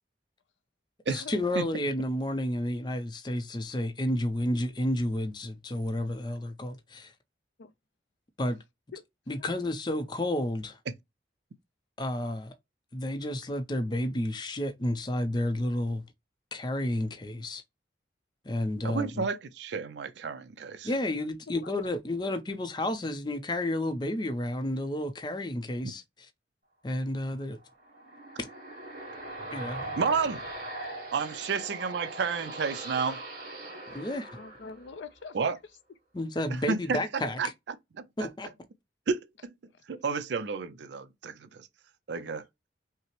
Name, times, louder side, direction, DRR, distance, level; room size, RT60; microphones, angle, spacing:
voice 1, 1.1-7.1 8.4-8.6 9.3-10.8 12.0-12.5 12.9-16.0 16.5-17.6 18.4-19.3 20.8-26.3 26.8-27.6 28.4-28.5 29.5-29.9 33.9-34.3 36.1-37.4 38.2-38.5, left 1 dB, 25° left, 0.5 m, -31 dB
voice 2, 18.8-20.9 30.0-30.4 31.1-33.2 35.3-35.6 36.5-37.0 37.4-37.5 38.0-38.1 39.1-39.5 39.9-41.7 42.1-42.5, right 5 dB, 70° right, 0.5 m, -31 dB
voice 3, 21.5-22.0 33.9-34.1 34.3-35.5 39.7-39.8, left 5 dB, 85° left, 0.5 m, -44 dB
sound 1, 27.6-35.2, right 1 dB, 45° right, 2.2 m, -41 dB
5.5 x 2.0 x 2.9 m
head